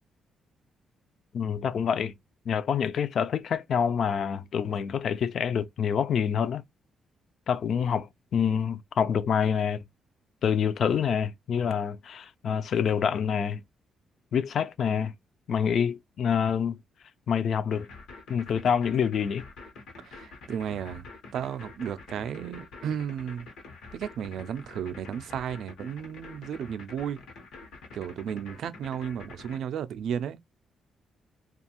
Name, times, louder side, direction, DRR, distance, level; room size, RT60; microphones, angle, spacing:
voice 1, 1.3-2.1 2.5-6.6 7.5-9.9 10.4-13.6 14.3-15.1 15.5-16.8 17.3-17.9 18.3-19.4, left 7 dB, 60° left, 0.3 m, -27 dB
sound 1, 17.7-29.6, left 3 dB, 85° left, 0.9 m, -46 dB
voice 2, 20.1-21.0 21.3-23.5 23.9-27.2 27.9-30.4, right 8 dB, 70° right, 0.3 m, -34 dB
2.5 x 2.3 x 2.8 m
cardioid pair, 110°, 0 cm